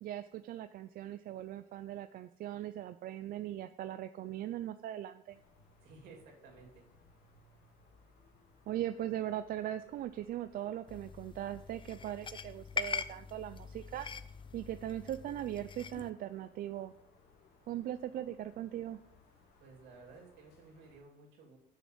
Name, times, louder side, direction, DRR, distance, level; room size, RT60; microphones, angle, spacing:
voice 1, 0.0-5.4 8.7-14.1 14.5-16.9 17.7-19.0, right 12 dB, 60° right, 11 dB, 0.4 m, -40 dB
sound 1, 5.3-21.0, left 3 dB, 75° left, 2.7 m, -65 dB
voice 2, 5.8-6.8 19.6-21.6, right 4 dB, 80° right, 1 dB, 3.0 m, -55 dB
sound 2, 10.9-16.1, left 6 dB, 30° left, 0.6 m, -42 dB
6.8 x 6.4 x 7.6 m, 0.77 s
cardioid pair, 110°, 17 cm